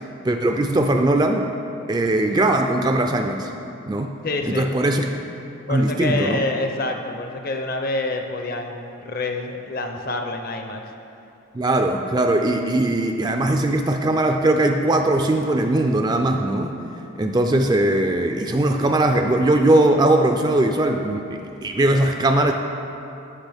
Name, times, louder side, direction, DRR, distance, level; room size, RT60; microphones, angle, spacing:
voice 1, 0.2-1.5 1.9-3.5 3.9-4.1 4.5-5.1 5.7-6.4 11.5-16.8 17.2-22.5, right 1 dB, 20° right, 5 dB, 0.3 m, -20 dB
voice 2, 4.2-4.7 5.7-10.9, left 2 dB, 40° left, 4 dB, 0.6 m, -27 dB
14.0 x 5.9 x 3.5 m, 2.8 s
head